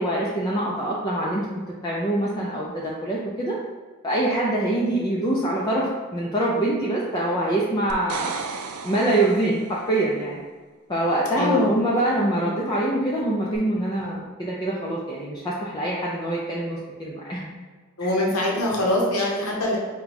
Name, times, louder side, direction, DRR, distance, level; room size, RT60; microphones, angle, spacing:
voice 1, 0.0-1.5 1.8-3.6 4.0-8.3 8.8-10.4 10.9-17.5 18.0-18.1 18.5-18.6, right 1 dB, 20° left, -5 dB, 0.4 m, -24 dB
sound 1, 7.9-9.8 13.5-13.6, right 5 dB, 85° right, 0.4 m, -34 dB
voice 2, 11.4-11.7 18.0-19.8, left 1 dB, 80° left, -2 dB, 0.9 m, -23 dB
4.6 x 2.2 x 4.0 m, 1.4 s
head